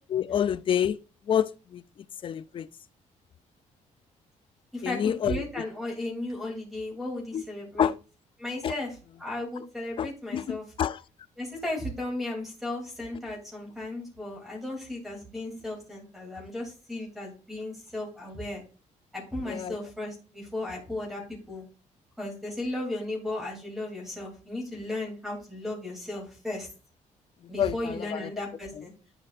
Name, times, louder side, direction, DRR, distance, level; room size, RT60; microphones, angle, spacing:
voice 1, 0.1-1.0 1.3-1.8 2.2-2.7 4.8-5.4 7.3-7.4 7.8-7.9 8.6-8.7 10.0-11.0 19.5-19.8 27.6-28.3 28.8-28.9, left 9 dB, 40° left, 0.4 m, -28 dB
voice 2, 4.7-7.9 8.4-8.9 9.2-10.6 11.4-18.6 19.1-21.2 21.5-21.6 22.2-26.7 27.5-28.9, left 1 dB, ahead, 2.7 m, -35 dB
9.8 x 4.6 x 2.4 m
cardioid pair, 135°, 13 cm